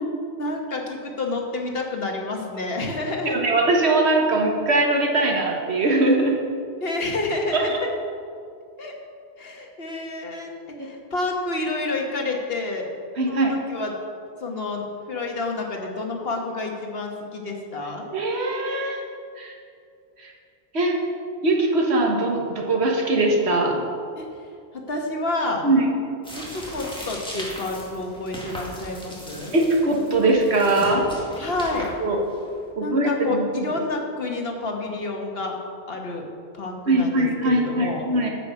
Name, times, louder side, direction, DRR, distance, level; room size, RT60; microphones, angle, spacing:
voice 1, 0.4-3.4 6.8-7.8 8.8-8.9 9.4-10.5 10.8-12.9 13.3-13.9 14.4-18.1 24.1-24.2 24.7-25.6 26.5-29.5 31.4-31.9 32.8-35.6 35.9-36.3 36.5-38.0, left 2 dB, 65° left, 1 dB, 1.5 m, -29 dB
voice 2, 3.2-6.4 7.5-7.8 13.2-13.5 18.1-19.0 19.4-19.6 20.2-20.3 20.7-21.0 21.4-23.8 25.6-25.9 29.5-31.1 32.0-32.2 32.8-33.7 36.9-38.3, right 2 dB, 85° right, 0 dB, 1.7 m, -21 dB
sound 1, 26.2-32.6, equal, 5° left, 1.9 m, -38 dB
8.8 x 8.0 x 5.8 m, 2.4 s
omnidirectional pair, 1.1 m